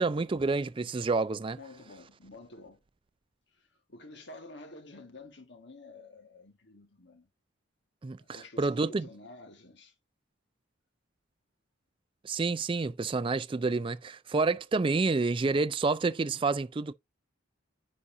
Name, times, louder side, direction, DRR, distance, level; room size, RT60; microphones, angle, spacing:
voice 1, 0.0-1.6 8.0-9.1 12.2-16.9, right 3 dB, 25° right, 0.3 m, -29 dB
voice 2, 1.5-2.8 3.5-7.3 8.2-9.9, left 2 dB, 55° left, 1.6 m, -50 dB
9.7 x 4.1 x 2.6 m
head